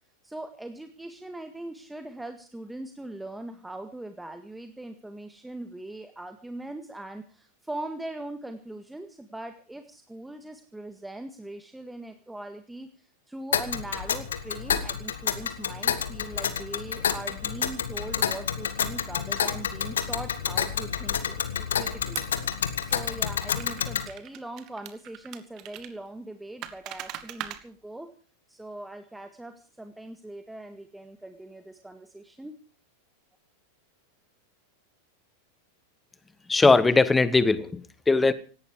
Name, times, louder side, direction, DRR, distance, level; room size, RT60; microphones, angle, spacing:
voice 1, 0.2-22.5 22.8-28.1 28.5-32.5, right 1 dB, 5° right, 1.8 m, -41 dB
Tick, 13.5-24.1, left 8 dB, 65° left, 1.9 m, -29 dB
sound 1, 22.1-22.5 22.9-23.0 23.6-25.9 26.6-27.6, right 13 dB, 40° right, 2.2 m, -39 dB
voice 2, 36.5-38.3, left 3 dB, 10° left, 1.4 m, -20 dB
18.5 x 15.5 x 4.9 m
figure-of-eight pair, 90°, 0 cm